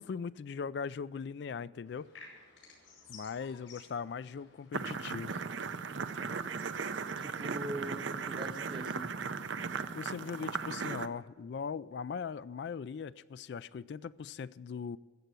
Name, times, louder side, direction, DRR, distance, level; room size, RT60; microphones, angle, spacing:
voice 1, 0.0-2.1 3.1-5.4 9.9-15.0, left 6 dB, 60° left, 0.3 m, -40 dB
sound 1, 1.8-10.8, left 3 dB, 90° left, 5.2 m, -59 dB
sound 2, 4.7-11.1, right 5 dB, 75° right, 0.6 m, -37 dB
voice 2, 7.2-9.2, right 1 dB, 25° right, 0.8 m, -42 dB
14.0 x 8.0 x 9.0 m
head